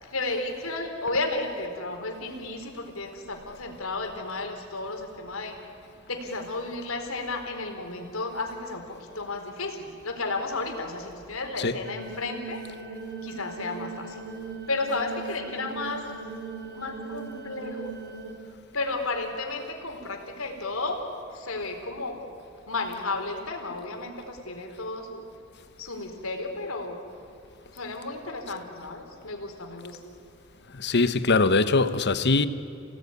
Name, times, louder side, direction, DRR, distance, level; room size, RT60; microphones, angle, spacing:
voice 1, 0.0-5.6 6.1-12.6 12.9-14.2 14.7-16.1 16.7-17.9 18.7-21.0 21.3-22.3 22.7-25.3 25.8-27.0 27.7-30.0, left 3 dB, 85° left, 4.2 m, -33 dB
sound 1, 11.9-18.3, right 4 dB, 55° right, 3.0 m, -39 dB
voice 2, 30.7-32.5, left 3 dB, 55° left, 1.2 m, -22 dB
29.5 x 18.0 x 9.9 m
head